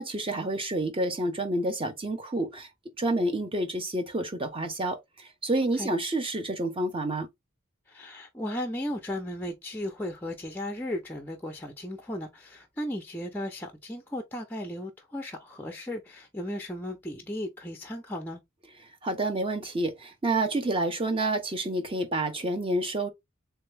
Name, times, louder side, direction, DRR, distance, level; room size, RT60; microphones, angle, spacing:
voice 1, 0.0-2.7 3.0-7.3 19.0-23.1, right 2 dB, 25° right, 0.8 m, -29 dB
voice 2, 7.9-18.4, left 1 dB, 10° left, 0.5 m, -35 dB
3.4 x 2.8 x 3.3 m
head